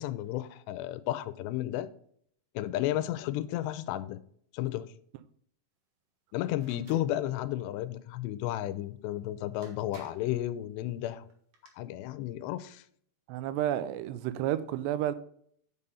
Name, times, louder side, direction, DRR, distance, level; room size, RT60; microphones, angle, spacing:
voice 1, 0.0-1.9 2.6-4.2 4.5-4.9 6.3-11.3 11.8-12.8, left 14 dB, 85° left, 15 dB, 2.7 m, -33 dB
sound 1, 6.6-7.1 9.1-9.2 9.6-10.4 11.3-11.7, right 4 dB, 60° right, 2.8 m, -54 dB
voice 2, 13.3-15.1, right 12 dB, 85° right, 13 dB, 2.7 m, -31 dB
6.8 x 5.6 x 5.4 m, 0.62 s
omnidirectional pair, 4.9 m